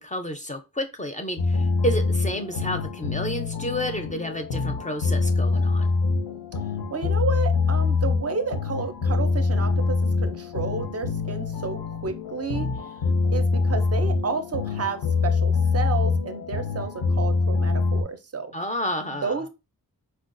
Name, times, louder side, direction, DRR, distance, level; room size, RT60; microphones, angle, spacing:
voice 1, 0.0-5.9 18.5-19.5, equal, 20° left, 0.4 m, -30 dB
sound 1, 1.4-18.0, left 4 dB, 90° left, 0.8 m, -24 dB
voice 2, 6.9-12.7 13.3-18.5 19.2-19.5, right 5 dB, 45° right, 0.4 m, -31 dB
4.5 x 2.2 x 2.5 m
wide cardioid pair, 120°, 36 cm